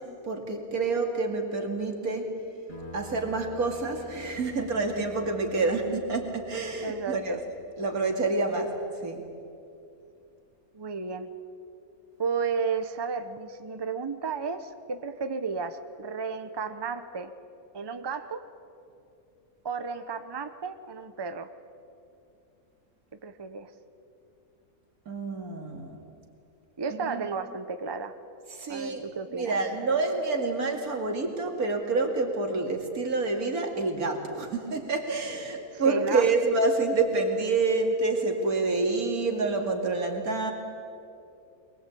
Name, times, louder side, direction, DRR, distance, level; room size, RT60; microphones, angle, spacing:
voice 1, 0.0-2.3 2.9-7.4 7.8-9.3 25.1-26.0 26.9-27.2 28.5-29.0 29.3-40.5, right 3 dB, 85° right, 3 dB, 2.9 m, -28 dB
sound 1, 2.7-7.8, right 1 dB, 35° left, 7.5 m, -47 dB
voice 2, 6.8-7.4 10.7-11.3 12.2-17.3 17.7-18.5 19.6-21.5 23.2-23.7 26.8-28.2 28.7-29.6 35.7-36.3, right 5 dB, 20° right, 9 dB, 0.8 m, -33 dB
22.5 x 21.5 x 8.4 m, 2.7 s
omnidirectional pair, 1.5 m